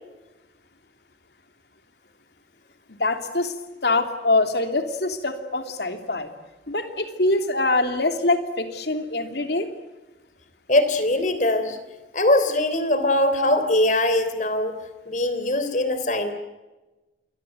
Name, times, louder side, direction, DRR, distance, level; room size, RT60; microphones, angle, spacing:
voice 1, 2.9-3.5 3.8-6.3 6.7-9.7, left 2 dB, 65° left, 7 dB, 3.1 m, -24 dB
voice 2, 10.7-11.8 12.1-14.8 15.0-16.3, left 1 dB, 40° left, 10 dB, 3.3 m, -21 dB
27.5 x 22.5 x 9.3 m, 1.1 s
head